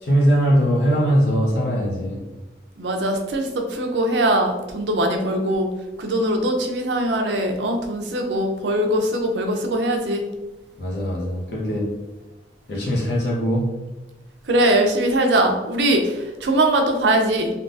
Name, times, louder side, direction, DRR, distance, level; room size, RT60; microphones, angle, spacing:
voice 1, 0.0-2.2 10.8-11.9 12.7-13.7, equal, 70° left, -3 dB, 0.7 m, -21 dB
voice 2, 2.8-5.7 6.0-10.2 14.5-17.5, right 1 dB, 80° right, 3 dB, 0.5 m, -21 dB
3.5 x 2.3 x 2.5 m, 1.1 s
head